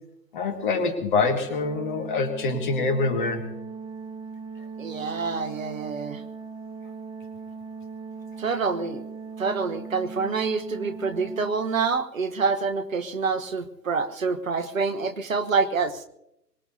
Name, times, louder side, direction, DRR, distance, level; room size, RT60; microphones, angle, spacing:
voice 1, 0.3-3.4, left 3 dB, 30° left, 7 dB, 1.8 m, -25 dB
Organ, 1.2-12.1, right 5 dB, 25° right, 3.2 m, -39 dB
voice 2, 4.8-6.2 8.4-9.0 9.4-16.1, right 4 dB, 55° right, 10 dB, 1.2 m, -27 dB
23.5 x 19.5 x 2.7 m, 0.83 s
figure-of-eight pair, 135°, 49 cm